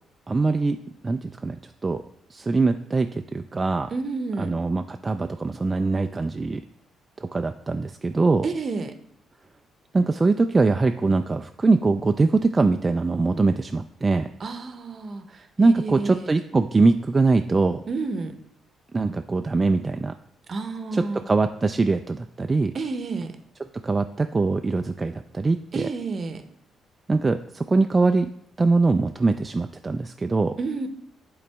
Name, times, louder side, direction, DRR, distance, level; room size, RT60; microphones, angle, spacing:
voice 1, 0.3-0.8 1.0-1.6 1.8-2.0 2.3-3.9 4.4-6.6 7.2-8.5 9.9-14.3 15.6-17.8 18.9-20.1 20.9-22.7 23.8-25.9 27.1-28.3 28.6-30.5, right 3 dB, 25° right, 6 dB, 0.3 m, -22 dB
voice 2, 3.9-4.5 8.4-8.9 14.4-16.3 17.9-18.3 20.5-21.2 22.7-23.3 25.7-26.4 30.6-30.9, right 3 dB, 45° right, 8 dB, 0.8 m, -30 dB
10.0 x 4.0 x 3.4 m, 0.69 s
cardioid pair, 90°, 0 cm